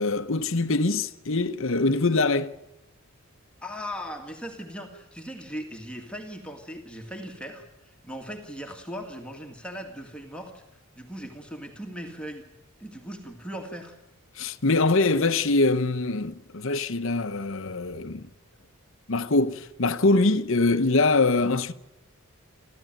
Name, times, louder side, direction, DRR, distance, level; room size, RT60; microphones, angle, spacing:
voice 1, 0.0-2.5 14.4-18.2 19.1-21.7, left 3 dB, 60° left, 1.0 m, -23 dB
voice 2, 3.6-10.6 11.0-12.5 12.8-14.0, equal, 5° left, 2.1 m, -38 dB
29.0 x 13.5 x 9.2 m
head